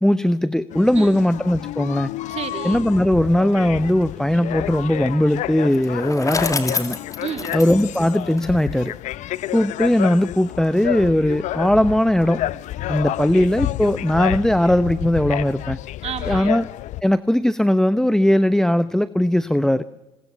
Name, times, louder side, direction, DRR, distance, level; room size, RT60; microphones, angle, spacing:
voice 1, 0.0-2.1 2.6-7.0 7.5-8.9 9.5-12.4 12.9-15.8 16.2-16.7 17.0-19.8, left 1 dB, 5° left, 14 dB, 0.8 m, -19 dB
sound 1, 0.7-17.0, left 14 dB, 65° left, 0.7 m, -30 dB
voice 2, 2.3-2.8 7.2-7.5 16.0-16.5, right 9 dB, 50° right, 7 dB, 3.1 m, -31 dB
Bicycle, 5.7-8.9, left 4 dB, 25° left, 2.5 m, -29 dB
26.5 x 21.0 x 6.8 m, 1.0 s
supercardioid pair, 75°, 13 cm